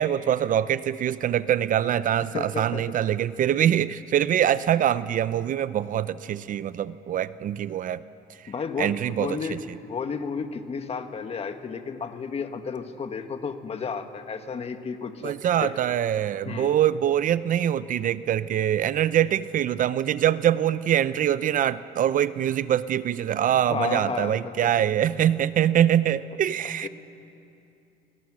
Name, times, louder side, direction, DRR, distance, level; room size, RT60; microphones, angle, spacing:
voice 1, 0.0-8.0 8.8-9.6 15.2-26.9, right 10 dB, 50° right, 16 dB, 0.6 m, -24 dB
voice 2, 2.3-2.9 8.5-15.8 16.4-16.8 23.7-24.7 26.8-26.9, left 5 dB, 35° left, 7 dB, 1.7 m, -32 dB
28.0 x 23.5 x 6.3 m, 2.7 s
cardioid pair, 110°, 17 cm